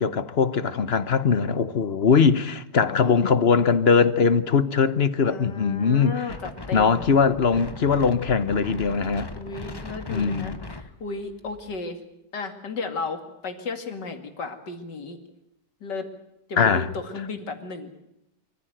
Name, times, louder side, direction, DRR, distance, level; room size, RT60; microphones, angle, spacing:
voice 1, 0.0-6.3 6.7-9.3 10.1-10.6 16.6-16.9, left 5 dB, 45° left, 1.0 m, -21 dB
voice 2, 2.9-3.2 5.2-7.1 9.4-12.0 12.3-15.2 15.8-16.1 16.5-17.9, left 4 dB, 85° left, 3.0 m, -34 dB
Wind, 6.3-11.8, left 2 dB, 20° left, 0.9 m, -39 dB
25.0 x 14.5 x 9.1 m
omnidirectional pair, 1.8 m